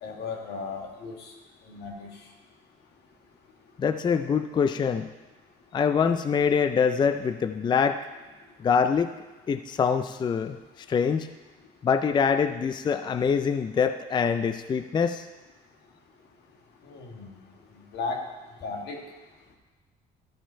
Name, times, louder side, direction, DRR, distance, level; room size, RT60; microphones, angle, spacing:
voice 1, 0.0-1.2 1.7-2.1 16.8-17.3 17.9-18.2 18.6-19.0, left 4 dB, 85° left, 1 dB, 1.8 m, -35 dB
voice 2, 3.8-5.1 5.7-8.0 8.6-9.1 9.5-11.3 11.8-15.3, left 6 dB, 25° left, 10 dB, 0.4 m, -24 dB
13.0 x 5.1 x 5.6 m, 1.2 s
cardioid pair, 110°, 17 cm